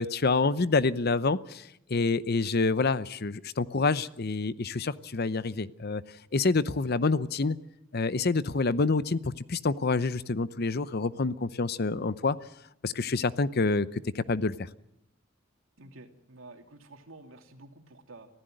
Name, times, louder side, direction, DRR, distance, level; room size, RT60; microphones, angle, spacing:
voice 1, 0.0-6.0 6.3-7.6 7.9-12.4 12.8-14.5, left 3 dB, 50° left, 15 dB, 0.7 m, -27 dB
voice 2, 15.8-18.3, right 2 dB, 75° right, 4 dB, 2.9 m, -50 dB
25.0 x 15.5 x 7.8 m, 0.78 s
head